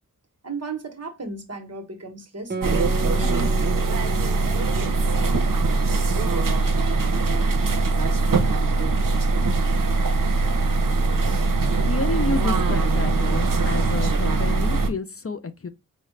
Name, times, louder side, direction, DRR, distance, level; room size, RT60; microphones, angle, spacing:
voice 1, 0.4-5.1, right 3 dB, 50° right, 1.1 m, -36 dB
Guitar, 2.5-7.4, right 4 dB, 30° right, 0.6 m, -36 dB
sound 1, 2.6-14.9, right 3 dB, 85° right, 0.7 m, -21 dB
voice 2, 11.8-15.7, left 3 dB, 45° left, 0.6 m, -30 dB
5.3 x 2.4 x 3.2 m
wide cardioid pair, 50°, 32 cm